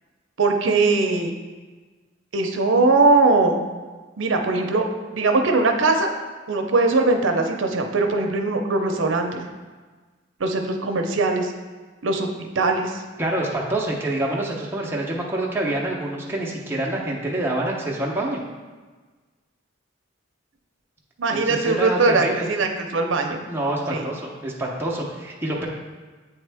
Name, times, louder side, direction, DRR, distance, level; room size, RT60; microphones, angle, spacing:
voice 1, 0.4-1.3 2.3-3.6 4.2-4.8 5.1-6.1 6.5-9.4 10.4-11.5 12.0-12.3 12.6-13.0 21.2-23.4 23.9-24.0, right 3 dB, 75° right, 4 dB, 0.6 m, -20 dB
voice 2, 13.2-18.4 21.3-22.5 23.5-25.7, right 1 dB, 10° right, -3 dB, 0.7 m, -26 dB
8.1 x 3.6 x 3.4 m, 1.4 s
head